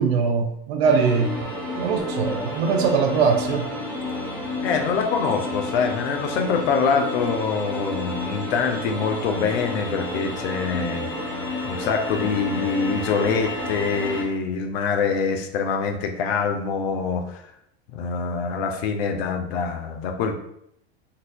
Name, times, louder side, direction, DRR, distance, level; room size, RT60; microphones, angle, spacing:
voice 1, 0.0-1.3 1.7-3.7, right 5 dB, 80° right, 5 dB, 0.6 m, -21 dB
sound 1, 0.8-14.2, left 1 dB, 5° left, 0.8 m, -30 dB
voice 2, 4.6-11.1 11.6-17.4 17.9-20.4, left 5 dB, 70° left, 5 dB, 0.6 m, -25 dB
4.0 x 2.6 x 2.2 m, 0.75 s
hypercardioid pair, 110°, 31 cm